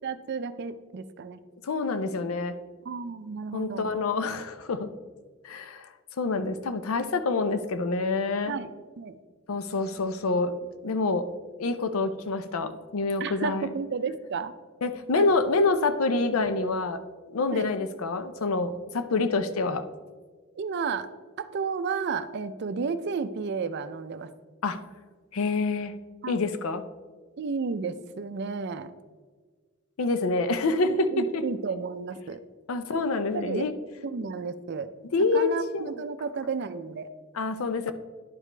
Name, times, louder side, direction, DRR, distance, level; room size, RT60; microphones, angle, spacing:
voice 1, 0.0-1.4 2.9-3.9 8.5-9.2 13.2-14.5 15.2-15.3 17.5-17.7 20.6-21.1 21.4-24.3 26.2-26.5 27.4-28.9 30.8-32.4 33.3-33.7 34.0-34.9 35.3-37.1, right 5 dB, 55° right, 13 dB, 0.4 m, -32 dB
voice 2, 1.6-2.6 3.5-4.9 5.4-5.9 6.2-8.5 9.5-10.5 10.8-11.3 11.6-13.7 14.8-17.0 17.3-19.8 24.6-24.8 25.3-25.9 26.3-26.8 30.0-31.4 32.7-33.7 35.1-36.0 37.3-37.9, left 3 dB, 85° left, 10 dB, 0.5 m, -27 dB
10.5 x 5.0 x 3.3 m, 1.5 s
head